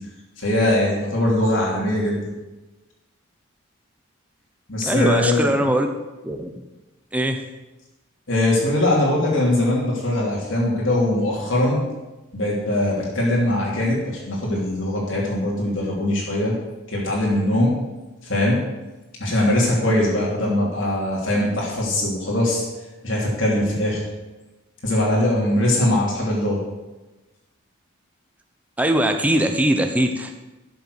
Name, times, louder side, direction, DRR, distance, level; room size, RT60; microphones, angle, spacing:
voice 1, 0.4-2.3 4.7-5.6 8.3-11.8 12.3-16.5 16.9-17.8 18.2-18.6 19.2-22.6 23.0-24.0 24.8-26.6, left 1 dB, 70° left, -4 dB, 3.1 m, -21 dB
voice 2, 4.8-5.9 6.2-6.5 7.1-7.4 28.8-30.3, right 1 dB, 5° right, 4 dB, 0.9 m, -21 dB
12.5 x 7.0 x 6.6 m, 1.1 s
head